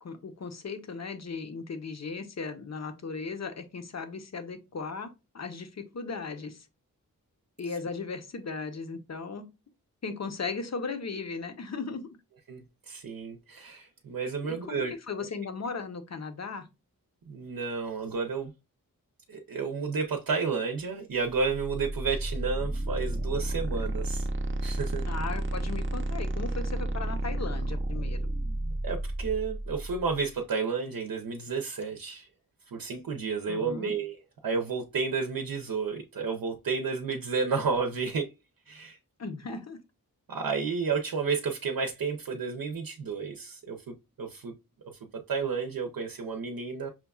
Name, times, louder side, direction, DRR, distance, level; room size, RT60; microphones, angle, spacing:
voice 1, 0.0-6.7 7.6-9.4 10.0-12.1 14.4-16.7 25.1-28.2 33.5-33.9 39.2-39.8, left 4 dB, 50° left, 0.8 m, -37 dB
voice 2, 12.9-14.9 17.3-18.5 19.3-24.3 24.6-25.0 28.8-32.3 32.7-34.2 34.4-38.3 38.7-39.0 39.5-39.6 40.3-44.5 45.3-46.9, right 5 dB, 75° right, 0.6 m, -31 dB
sound 1, 21.3-30.2, right 1 dB, 35° right, 0.6 m, -32 dB
5.8 x 2.3 x 2.3 m
wide cardioid pair, 85°, 34 cm